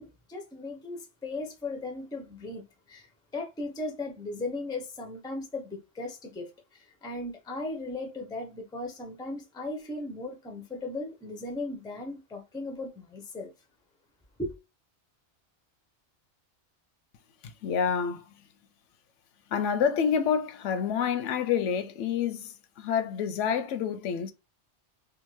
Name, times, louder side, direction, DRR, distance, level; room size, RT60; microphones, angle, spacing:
voice 1, 0.0-13.5 14.4-14.6, left 2 dB, 5° left, 0.3 m, -37 dB
voice 2, 17.4-18.3 19.5-24.3, left 7 dB, 90° left, 0.9 m, -28 dB
2.7 x 2.4 x 3.0 m
omnidirectional pair, 1.2 m